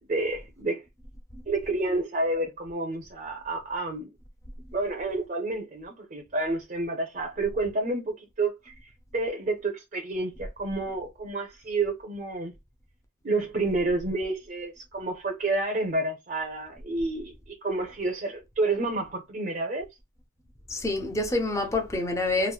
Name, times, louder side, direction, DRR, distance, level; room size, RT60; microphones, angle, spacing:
voice 1, 0.1-0.8 1.5-4.1 4.7-8.7 9.1-12.5 13.2-19.9, right 2 dB, 40° right, 0.6 m, -29 dB
voice 2, 20.7-22.5, left 2 dB, 15° left, 0.5 m, -27 dB
4.4 x 2.1 x 2.3 m
head